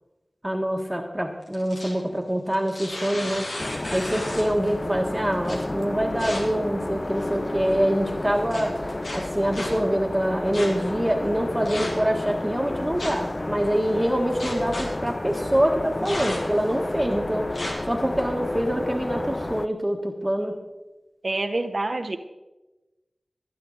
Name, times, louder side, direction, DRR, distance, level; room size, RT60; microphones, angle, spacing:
voice 1, 0.4-3.5 3.9-8.8 9.1-20.6, equal, 15° right, 1 dB, 1.4 m, -25 dB
sound 1, 1.4-2.0 2.5-4.6 5.4-5.6 6.2-6.4 7.1-7.5 8.5-8.6 9.0-9.7 10.5-10.7 11.6-12.1 13.0-13.3 14.4-14.8 16.0-16.6 17.5-17.7, left 1 dB, 85° left, 3.3 m, -33 dB
sound 2, 3.6-19.7, left 1 dB, 35° left, 0.4 m, -31 dB
voice 2, 21.2-22.2, right 2 dB, 55° right, 6 dB, 0.9 m, -26 dB
19.5 x 9.2 x 3.9 m, 1.1 s
cardioid pair, 45°, 0 cm